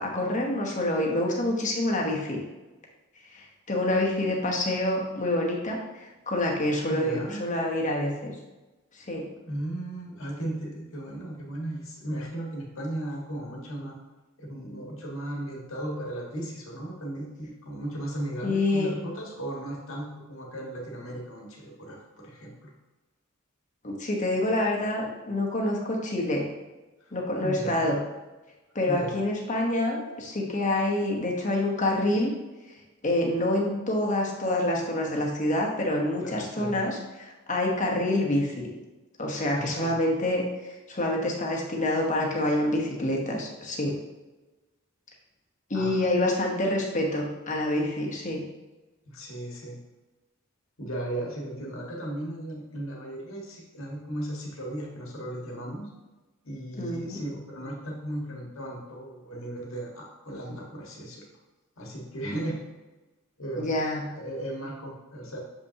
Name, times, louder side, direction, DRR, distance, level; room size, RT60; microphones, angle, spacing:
voice 1, 0.0-2.4 3.3-8.4 9.0-9.2 18.4-19.0 23.8-26.4 27.1-28.0 28.7-32.3 33.0-38.7 39.2-43.9 45.7-48.4 56.8-57.2 63.6-64.1, left 1 dB, 35° left, 0 dB, 1.1 m, -27 dB
voice 2, 6.8-7.5 9.5-14.0 14.4-22.7 27.4-27.8 28.9-29.2 36.2-36.8 39.5-40.0 45.7-46.3 49.0-49.8 50.8-55.9 56.4-61.2 61.8-62.6 63.4-63.8 64.1-65.4, right 1 dB, 70° left, -2 dB, 1.6 m, -36 dB
7.0 x 5.4 x 2.9 m, 1.1 s
head